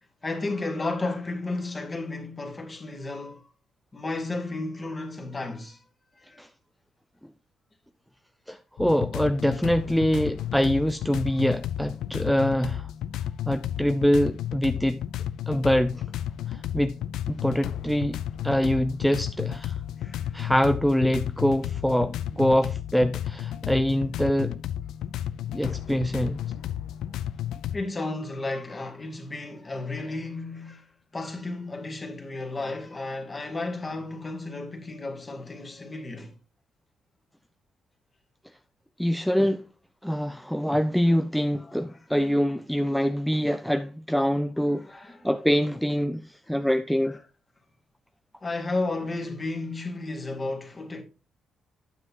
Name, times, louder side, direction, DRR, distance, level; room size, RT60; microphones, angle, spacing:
voice 1, 0.2-3.5 3.9-5.8 6.2-6.4 10.1-10.2 13.3-13.4 20.0-20.4 27.7-36.4 41.1-41.2 41.6-42.0 44.8-45.3 47.1-47.2 48.4-51.0, left 2 dB, 30° left, 1.9 m, -33 dB
voice 2, 8.5-12.9 13.5-15.0 15.5-16.0 16.5-17.0 17.3-19.8 20.3-24.6 25.5-26.4 39.0-39.7 40.0-44.9 45.2-47.2, equal, ahead, 0.4 m, -24 dB
sound 1, 8.8-27.8, left 11 dB, 80° left, 0.5 m, -33 dB
9.2 x 7.8 x 2.9 m
cardioid pair, 90°, 0 cm